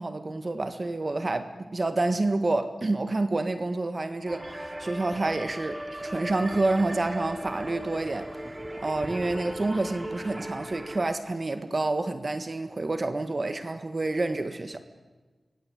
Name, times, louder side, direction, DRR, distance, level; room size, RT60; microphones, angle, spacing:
voice 1, 0.0-8.3 8.8-14.8, right 2 dB, 45° right, 1.6 m, -28 dB
sound 1, 4.3-11.1, right 1 dB, 25° right, 2.7 m, -37 dB
26.0 x 20.0 x 8.3 m
wide cardioid pair, 70°, 0 cm